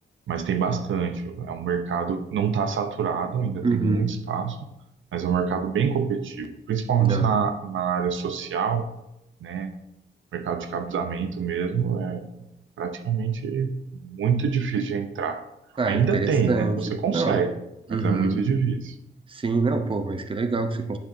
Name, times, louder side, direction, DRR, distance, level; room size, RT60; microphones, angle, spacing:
voice 1, 0.3-4.7 5.1-8.9 9.4-9.7 10.3-12.3 12.8-15.4 15.9-17.6 17.9-18.9, right 6 dB, 80° right, 7 dB, 0.7 m, -26 dB
voice 2, 3.6-4.1 7.0-7.3 15.8-16.8 17.1-17.4 17.9-18.4 19.3-21.0, right 3 dB, 25° right, 7 dB, 0.7 m, -25 dB
9.1 x 6.8 x 2.7 m, 0.89 s
wide cardioid pair, 115°, 20 cm